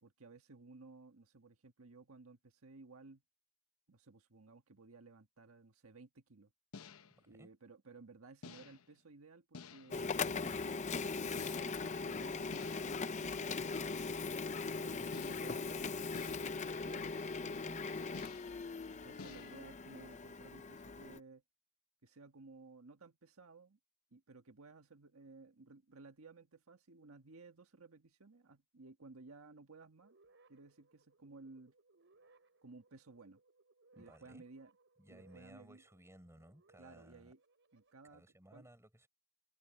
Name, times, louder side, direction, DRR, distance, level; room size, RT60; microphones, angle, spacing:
voice 1, 0.0-3.2 3.9-6.5 7.3-14.4 14.8-18.2 18.9-21.4 22.0-23.8 24.1-30.1 30.5-31.7 32.6-33.4 34.0-34.7 35.1-35.8 36.8-37.4 37.7-38.2 38.5-38.7, right 3 dB, 90° right, 1.5 m, -57 dB
sound 1, 6.7-7.2 8.4-8.9 9.5-10.1 11.4-11.9 12.5-13.1 15.1-15.6 16.1-16.7 18.1-18.6 19.2-19.6, left 5 dB, 80° left, 0.9 m, -53 dB
voice 2, 7.2-7.5 34.0-34.4 35.0-37.3 38.1-39.1, right 1 dB, 15° right, 5.9 m, -60 dB
Printer, 9.9-21.2, left 4 dB, 35° left, 0.6 m, -40 dB
sound 2, 30.0-38.0, right 3 dB, 60° right, 6.9 m, -70 dB
head